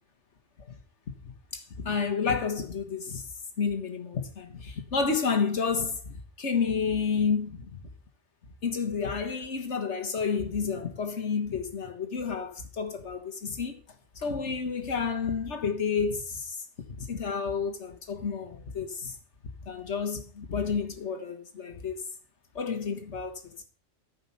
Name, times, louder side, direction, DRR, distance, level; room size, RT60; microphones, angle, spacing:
voice 1, 1.2-3.3 3.6-7.8 8.6-13.8 14.2-19.2 19.6-22.0 22.6-23.6, left 5 dB, 80° left, 1.8 m, -30 dB
14.0 x 5.6 x 5.6 m
omnidirectional pair, 1.2 m